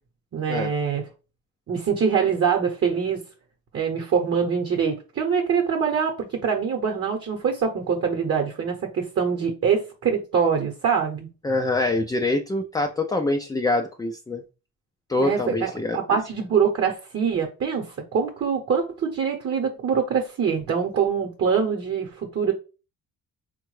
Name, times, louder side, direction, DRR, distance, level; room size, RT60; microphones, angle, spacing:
voice 1, 0.3-1.0 1.7-3.2 3.7-11.3 15.2-22.5, right 6 dB, 40° right, 3 dB, 0.9 m, -24 dB
voice 2, 11.4-14.4 15.1-16.2, left 2 dB, 10° left, 4 dB, 0.3 m, -25 dB
3.6 x 2.2 x 3.1 m, 0.32 s
cardioid pair, 85°, 37 cm